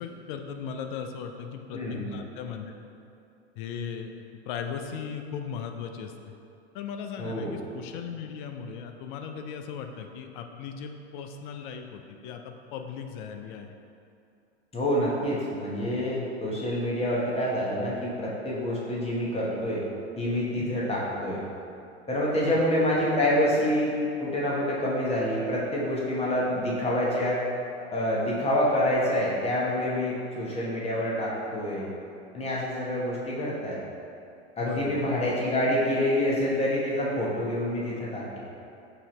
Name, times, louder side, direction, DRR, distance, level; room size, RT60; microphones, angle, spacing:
voice 1, 0.0-2.8 3.6-4.1 4.5-6.1 6.7-13.7 20.6-20.7 22.4-22.6 34.6-35.0, left 7 dB, 45° left, 6 dB, 0.4 m, -37 dB
voice 2, 1.7-2.1 7.2-7.5 14.7-19.8 20.2-21.4 22.1-27.4 27.9-31.9 32.3-33.8 34.6-38.4, left 1 dB, 15° left, -5 dB, 1.0 m, -27 dB
5.6 x 2.7 x 3.0 m, 2.6 s
hypercardioid pair, 100°, 34 cm